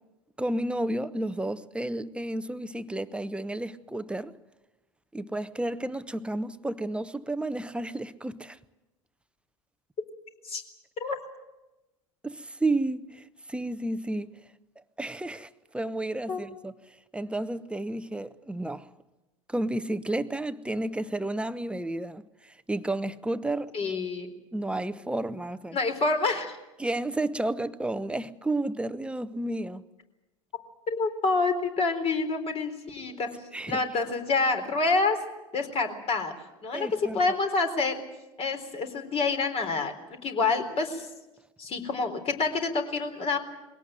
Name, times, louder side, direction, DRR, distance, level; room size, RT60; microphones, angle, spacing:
voice 1, 0.4-4.3 5.1-8.6 12.2-13.2 13.5-14.3 15.0-16.7 17.1-18.9 19.5-22.2 22.7-23.9 24.5-25.8 26.8-29.8 33.5-33.8 36.7-37.2, right 1 dB, 5° right, 0.9 m, -31 dB
voice 2, 23.7-24.3 25.7-26.6 30.9-33.3 33.7-35.2 35.5-36.3 36.6-37.9 38.4-39.9 40.2-41.1 41.6-43.4, left 3 dB, 35° left, 3.9 m, -27 dB
22.0 x 17.5 x 9.2 m
figure-of-eight pair, 80°, 17 cm